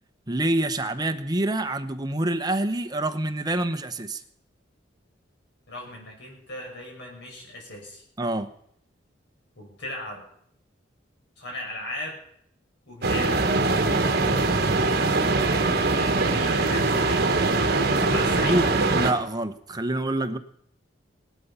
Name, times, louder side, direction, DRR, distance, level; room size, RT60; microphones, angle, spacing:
voice 1, 0.3-4.2 8.2-8.5 18.5-20.4, right 1 dB, 20° right, 7 dB, 1.0 m, -26 dB
voice 2, 5.7-8.0 9.6-10.2 11.4-12.2 12.9-13.6 15.8-18.6, left 1 dB, 65° left, 1 dB, 5.9 m, -37 dB
sound 1, 13.0-19.1, right 3 dB, 55° right, 1.5 m, -22 dB
18.0 x 12.0 x 5.7 m, 0.69 s
head